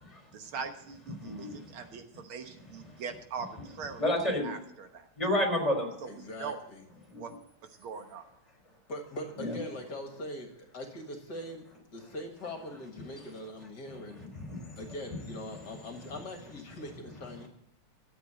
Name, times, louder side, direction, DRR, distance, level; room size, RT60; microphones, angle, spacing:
voice 1, 0.3-4.0 4.4-5.1 6.0-6.6 7.1-7.3 7.8-8.3, right 5 dB, 75° right, 7 dB, 2.0 m, -41 dB
voice 2, 1.2-1.6 4.0-4.5 5.2-5.9 7.1-7.2 9.4-9.6 14.3-14.8, left 1 dB, 15° left, 2 dB, 3.5 m, -30 dB
voice 3, 6.1-6.8 8.9-11.7 11.9-14.2 14.8-17.5, left 1 dB, 50° left, 5 dB, 2.1 m, -42 dB
13.0 x 7.8 x 8.6 m, 0.75 s
omnidirectional pair, 2.4 m